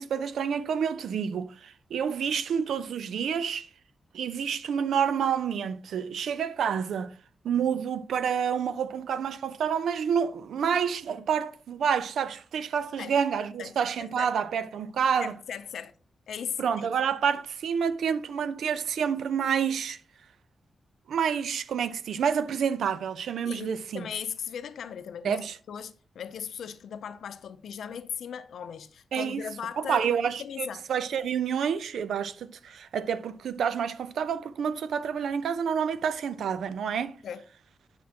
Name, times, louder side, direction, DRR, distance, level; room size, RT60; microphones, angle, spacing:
voice 1, 0.0-3.7 4.1-7.1 7.4-15.3 16.6-20.0 21.1-24.1 25.2-25.6 29.1-29.4 29.8-37.2, right 7 dB, 85° right, 0.5 m, -28 dB
voice 2, 13.6-14.3 15.2-15.9 16.3-16.9 23.4-25.4 25.7-30.1 30.4-30.8 37.2-37.4, left 8 dB, 80° left, 0.5 m, -38 dB
9.4 x 6.0 x 2.9 m
wide cardioid pair, 160°, 0 cm